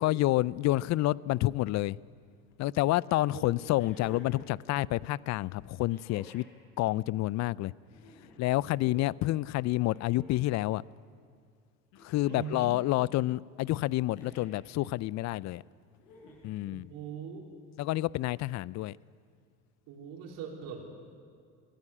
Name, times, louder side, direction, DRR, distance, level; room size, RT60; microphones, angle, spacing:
voice 1, 0.0-2.0 2.6-6.4 6.8-7.7 8.4-10.8 12.0-15.6 16.4-16.9 17.8-19.0, left 17 dB, 50° left, 23 dB, 0.5 m, -29 dB
voice 2, 3.2-3.5 8.9-9.1 12.3-12.7 16.7-17.5 19.9-20.8, right 7 dB, 65° right, 0 dB, 4.3 m, -41 dB
sound 1, 3.7-4.5 5.9-6.5 7.8-8.5 9.8-10.6 11.9-12.6 14.1-14.6 16.0-16.6 17.9-18.0, left 2 dB, 70° left, 6.4 m, -52 dB
22.5 x 16.0 x 8.6 m, 2.2 s
hypercardioid pair, 75°, 35 cm